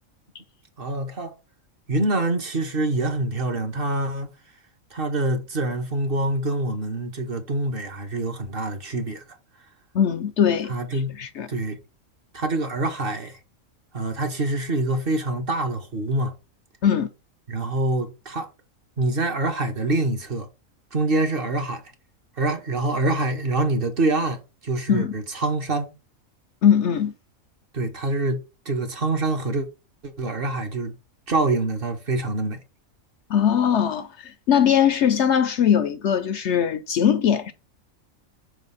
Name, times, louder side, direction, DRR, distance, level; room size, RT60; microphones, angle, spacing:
voice 1, 0.8-1.3 1.9-4.3 4.9-9.2 10.7-11.1 11.5-11.8 12.3-13.4 13.9-16.3 17.5-18.5 19.0-20.5 20.9-21.8 22.4-25.9 27.7-29.7 30.0-30.9 31.3-32.6, right 2 dB, 45° right, 1.0 m, -25 dB
voice 2, 9.9-10.7 11.2-11.5 16.8-17.1 24.9-25.1 26.6-27.1 33.3-37.5, left 8 dB, 65° left, 0.8 m, -20 dB
5.6 x 3.4 x 5.5 m
omnidirectional pair, 1.5 m